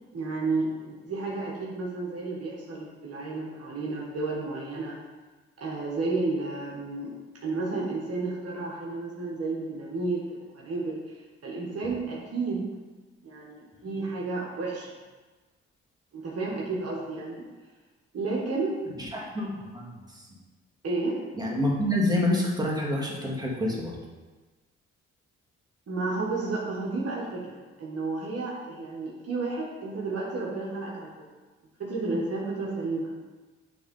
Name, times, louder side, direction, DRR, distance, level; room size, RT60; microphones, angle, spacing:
voice 1, 0.1-5.0 5.6-7.1 7.4-11.2 11.4-12.7 13.2-14.9 16.1-17.4 18.1-18.8 19.4-19.5 20.8-21.2 25.9-31.1 31.8-33.1, right 3 dB, 55° right, -3 dB, 1.6 m, -32 dB
voice 2, 19.0-20.3 21.4-24.0, left 1 dB, 15° right, -3 dB, 2.1 m, -28 dB
6.9 x 3.8 x 5.4 m, 1.3 s
supercardioid pair, 55°, 29 cm